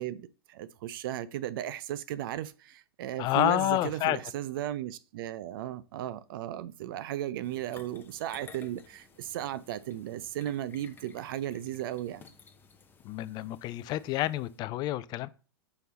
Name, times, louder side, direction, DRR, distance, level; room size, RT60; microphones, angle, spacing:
voice 1, 0.0-12.2, right 12 dB, 60° right, 0.5 m, -35 dB
voice 2, 3.2-4.2 13.0-15.3, left 15 dB, 35° left, 0.4 m, -29 dB
sound 1, 7.4-14.6, left 5 dB, 15° left, 0.8 m, -55 dB
5.4 x 4.6 x 4.0 m
hypercardioid pair, 115°, 13 cm